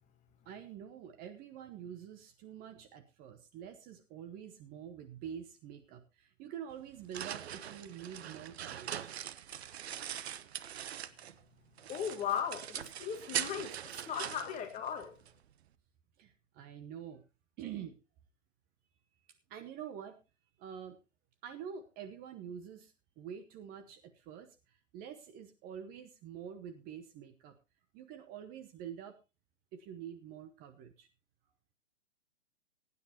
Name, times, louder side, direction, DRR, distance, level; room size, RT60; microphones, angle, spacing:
voice 1, 0.4-9.1 16.2-17.2 17.6-18.0 19.5-20.2 20.6-21.0 21.4-27.6 27.9-29.2 29.7-31.1, right 8 dB, 25° right, 1.0 m, -47 dB
sound 1, 6.7-11.4 11.8-15.3, right 10 dB, 60° right, 0.9 m, -42 dB
voice 2, 11.9-15.2, left 8 dB, 20° left, 1.7 m, -37 dB
20.5 x 9.5 x 2.9 m
figure-of-eight pair, 115°, 37 cm